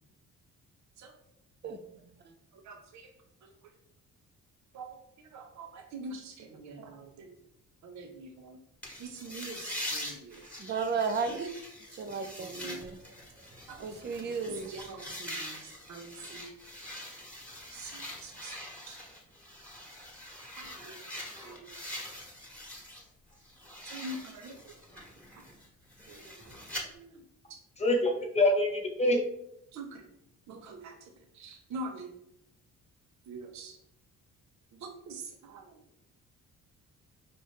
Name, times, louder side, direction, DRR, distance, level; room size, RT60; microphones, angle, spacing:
voice 1, 1.6-2.2 10.6-11.4 11.9-13.0 13.5-14.7, right 5 dB, 35° right, 8 dB, 0.6 m, -34 dB
voice 2, 2.5-3.1 3.4-3.5 4.7-4.9 5.2-7.4 7.8-8.6 9.0-10.5 11.4-11.5 12.4-12.8 13.7-13.8 14.7-16.5 17.7-18.6 18.9-19.0 20.6-21.0 21.4-21.7 23.8-24.7 25.3-25.5 26.1-26.5 26.8-27.2 27.5-27.6 29.7-30.0 30.5-32.1 33.3-33.8 34.7-35.8, right 2 dB, 65° right, 3 dB, 0.8 m, -45 dB
sound 1, 8.8-23.1 23.4-26.8, left 1 dB, 5° left, 1.3 m, -44 dB
voice 3, 27.8-29.2, left 1 dB, 20° left, 1 dB, 1.1 m, -25 dB
5.5 x 2.5 x 3.5 m, 0.76 s
cardioid pair, 90°, 30 cm